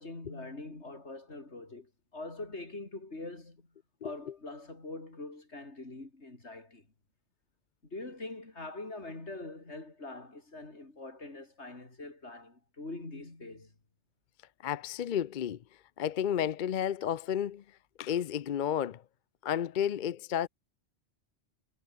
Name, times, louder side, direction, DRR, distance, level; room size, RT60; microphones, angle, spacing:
voice 1, 0.0-3.7 4.0-6.9 7.8-13.7, left 2 dB, 80° left, 4.5 m, -44 dB
voice 2, 14.6-15.6 16.0-17.6 18.0-19.0 19.4-20.5, left 9 dB, 55° left, 0.7 m, -31 dB
omnidirectional pair, 1.1 m